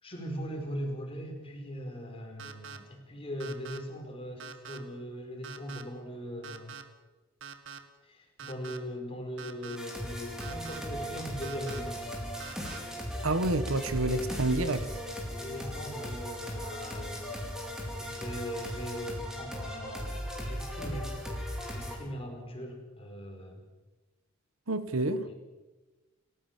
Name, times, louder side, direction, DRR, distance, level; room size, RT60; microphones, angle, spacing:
voice 1, 0.0-6.8 8.0-12.0 15.4-17.3 18.0-21.1 21.6-23.6 25.2-25.3, equal, 25° left, 5.0 m, -40 dB
sound 1, 2.4-2.8 3.4-3.8 4.4-4.8 5.4-5.8 6.4-6.8 7.4-7.8 8.4-8.8 9.4-9.8 10.4-10.8 11.4-11.8 12.4-12.8, right 6 dB, 60° right, 1.7 m, -44 dB
sound 2, 9.7-21.9, equal, 5° right, 4.7 m, -37 dB
voice 2, 13.2-14.9 24.7-25.3, right 2 dB, 80° right, 1.4 m, -28 dB
29.0 x 15.0 x 7.5 m
head